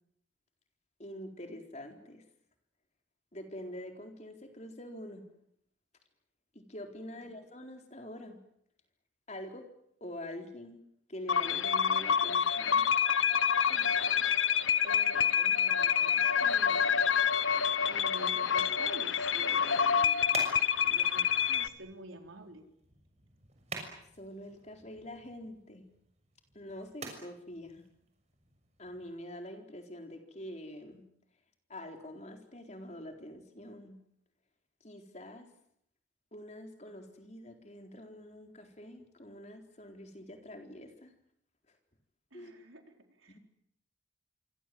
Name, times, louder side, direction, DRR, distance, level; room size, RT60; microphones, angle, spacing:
voice 1, 1.0-2.2 3.3-5.3 6.5-8.4 9.3-9.7 10.0-10.8 11.1-12.9 24.2-25.9 26.5-27.8 28.8-31.1 31.7-34.0 34.8-35.5 36.3-41.1 42.3-42.5 43.3-43.4, left 1 dB, 35° left, 4 dB, 4.1 m, -45 dB
sound 1, 11.3-21.7, left 7 dB, 75° left, 1.1 m, -27 dB
voice 2, 13.7-16.9 17.9-20.3 20.8-22.6 42.3-42.8 43.1-43.4, right 1 dB, 90° right, 4 dB, 4.4 m, -49 dB
sound 2, 19.4-29.2, right 3 dB, 35° right, 6.4 m, -48 dB
27.5 x 24.5 x 7.9 m, 0.73 s
head